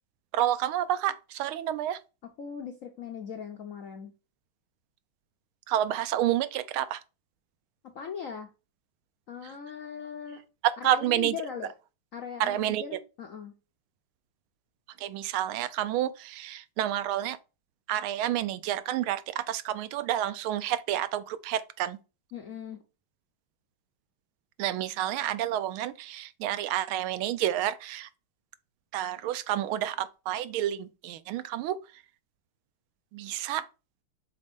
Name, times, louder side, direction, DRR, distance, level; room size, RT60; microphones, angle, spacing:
voice 1, 0.3-2.0 5.7-7.0 9.4-9.5 10.6-11.4 12.4-12.8 15.0-17.4 17.9-22.0 24.6-28.1 28.9-32.0 33.1-33.7, right 12 dB, 80° right, 1.4 m, -29 dB
voice 2, 2.4-4.1 7.9-8.5 9.3-10.4 10.8-11.7 12.1-13.5 22.3-22.8, left 6 dB, 70° left, 0.8 m, -39 dB
5.3 x 4.1 x 5.2 m
omnidirectional pair, 2.3 m